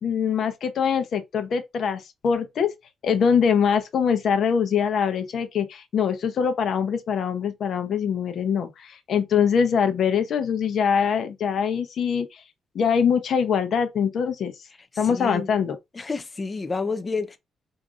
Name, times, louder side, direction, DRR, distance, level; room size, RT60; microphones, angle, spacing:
voice 1, 0.0-2.7 3.0-12.4 12.7-14.5 15.0-15.8, left 7 dB, 55° left, 0.7 m, -23 dB
voice 2, 14.9-15.5 15.9-17.4, left 4 dB, 25° left, 0.3 m, -29 dB
4.8 x 2.6 x 2.4 m
cardioid pair, 130°, 0 cm